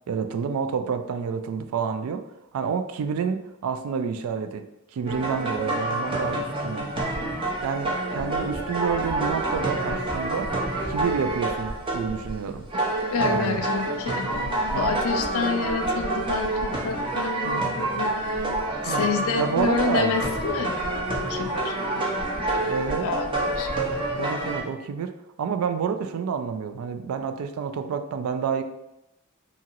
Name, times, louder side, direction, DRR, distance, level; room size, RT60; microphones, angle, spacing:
voice 1, 0.1-2.3 2.5-4.7 4.9-6.9 7.6-10.5 10.9-12.7 13.2-13.6 14.7-15.0 17.4-17.7 18.9-19.1 19.4-20.1 22.7-23.1 24.1-25.1 25.4-28.6, right 6 dB, 70° right, 9 dB, 0.3 m, -29 dB
sound 1, 5.1-24.6, right 2 dB, 25° right, 0.5 m, -28 dB
voice 2, 13.1-14.3 14.7-18.2 18.8-22.7 23.0-23.9, left 5 dB, 65° left, 6 dB, 0.4 m, -29 dB
2.9 x 2.8 x 2.4 m, 0.90 s
head